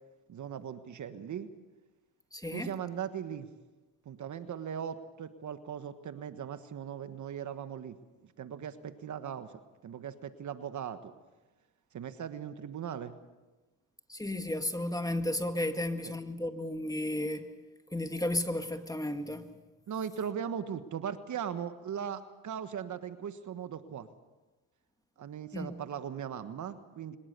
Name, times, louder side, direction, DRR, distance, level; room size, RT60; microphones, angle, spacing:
voice 1, 0.3-1.5 2.5-3.5 4.0-8.0 8.2-9.5 9.8-11.1 11.9-13.1 15.8-16.2 19.9-24.1 25.2-27.2, right 8 dB, 55° right, 1.4 m, -39 dB
voice 2, 2.3-2.7 14.1-17.5 17.9-19.5 25.5-25.7, left 1 dB, 10° left, 1.9 m, -33 dB
23.5 x 20.0 x 6.8 m
supercardioid pair, 75°, 35 cm